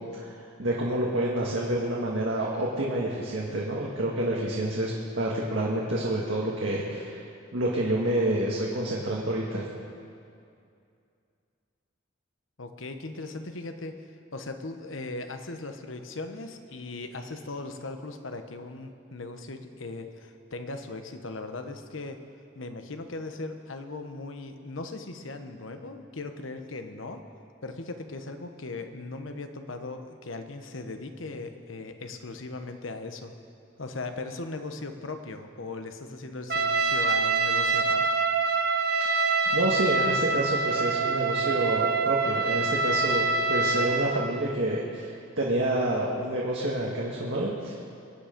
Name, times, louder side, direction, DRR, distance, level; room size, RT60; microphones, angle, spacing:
voice 1, 0.0-7.2 7.5-9.7 39.5-47.9, right 1 dB, 75° right, -4 dB, 1.7 m, -28 dB
voice 2, 12.6-22.2 22.5-27.2 27.6-33.3 33.8-38.1, left 3 dB, 85° left, 7 dB, 1.1 m, -38 dB
Trumpet, 36.5-44.2, right 4 dB, 55° right, 1.0 m, -25 dB
23.5 x 9.0 x 5.2 m, 2.4 s
head